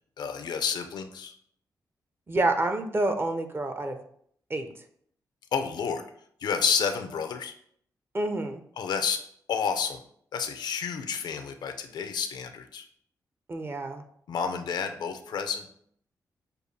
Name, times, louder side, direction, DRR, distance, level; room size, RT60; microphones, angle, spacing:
voice 1, 0.2-1.3 5.5-6.1 6.4-7.5 8.8-9.2 9.5-10.0 10.3-12.8 14.3-15.6, left 6 dB, 75° left, 7 dB, 0.4 m, -30 dB
voice 2, 2.3-4.0 4.5-4.7 8.1-8.6 13.5-14.0, right 2 dB, 30° right, 7 dB, 0.6 m, -28 dB
6.5 x 2.3 x 2.7 m, 0.65 s
cardioid pair, 60°, 7 cm